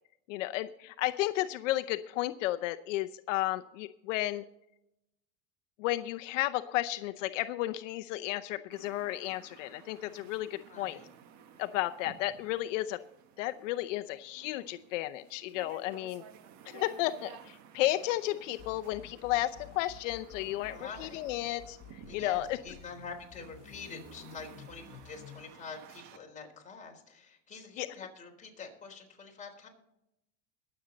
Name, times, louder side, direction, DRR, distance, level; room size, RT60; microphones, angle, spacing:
voice 1, 0.3-4.4 5.8-11.0 11.6-13.0 13.4-16.2 16.7-22.6 27.8-27.9, left 15 dB, 80° left, 10 dB, 0.7 m, -33 dB
sound 1, 8.7-26.2, right 8 dB, 50° right, 1.6 m, -55 dB
voice 2, 10.7-11.1 20.7-21.2 22.1-29.7, left 5 dB, 20° left, 0 dB, 3.9 m, -46 dB
sound 2, 18.6-25.4, left 10 dB, 45° left, 1.1 m, -52 dB
21.5 x 7.9 x 4.0 m, 0.85 s
supercardioid pair, 130°, 38 cm